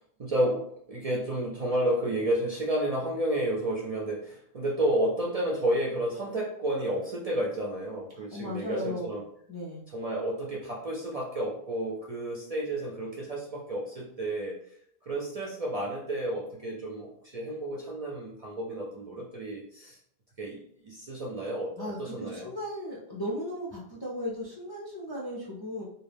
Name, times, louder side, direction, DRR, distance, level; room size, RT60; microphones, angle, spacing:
voice 1, 0.2-9.2 9.9-14.6 15.0-20.0 20.4-22.5, right 1 dB, 55° right, -3 dB, 0.4 m, -31 dB
voice 2, 8.1-9.2 9.5-9.9 21.8-25.8, left 1 dB, 40° left, -5 dB, 0.3 m, -36 dB
2.3 x 2.0 x 3.3 m, 0.70 s
omnidirectional pair, 1.1 m